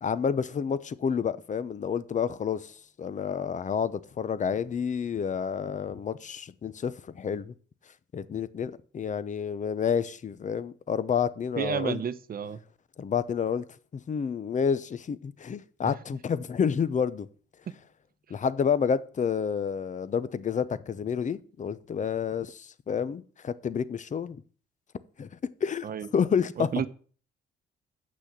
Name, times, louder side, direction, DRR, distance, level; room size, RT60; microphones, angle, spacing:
voice 1, 0.0-7.5 8.1-12.0 13.0-13.6 14.1-17.3 18.3-24.4 25.2-25.3 25.6-25.9 26.1-26.7, left 7 dB, 40° left, 0.8 m, -29 dB
voice 2, 11.6-12.6 15.8-15.9 25.8-26.1 26.7-26.9, right 8 dB, 45° right, 0.9 m, -31 dB
8.5 x 6.2 x 7.4 m
cardioid pair, 90°, 20 cm